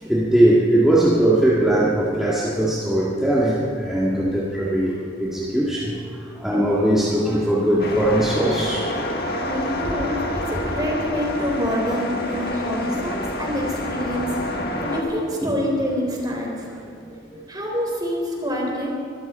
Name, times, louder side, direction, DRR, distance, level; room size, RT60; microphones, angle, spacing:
voice 1, 0.0-6.0 6.4-8.9 15.4-15.5, right 1 dB, ahead, -8 dB, 1.8 m, -20 dB
sound 1, 7.8-15.0, left 1 dB, 55° left, 1.8 m, -28 dB
voice 2, 9.4-16.6 17.5-18.9, equal, 20° right, -1 dB, 3.7 m, -26 dB
24.5 x 13.5 x 4.3 m, 2.5 s
head